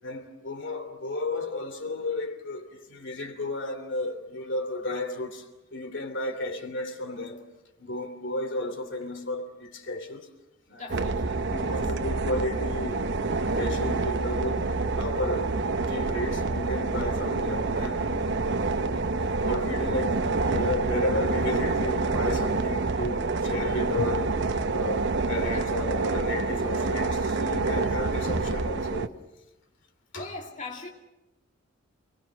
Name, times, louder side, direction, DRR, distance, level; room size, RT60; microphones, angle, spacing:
voice 1, 0.0-7.4 7.8-10.3 10.7-10.9 11.5-13.1 13.5-15.6 15.9-18.3 18.9-19.1 19.4-24.3 24.7-29.2 30.1-30.3, left 2 dB, 60° left, 2.9 m, -33 dB
voice 2, 10.7-11.8 25.5-25.6 30.1-30.9, left 3 dB, 35° left, 2.3 m, -41 dB
sound 1, 10.9-29.1, right 3 dB, 55° right, 0.9 m, -27 dB
29.0 x 21.0 x 6.3 m
head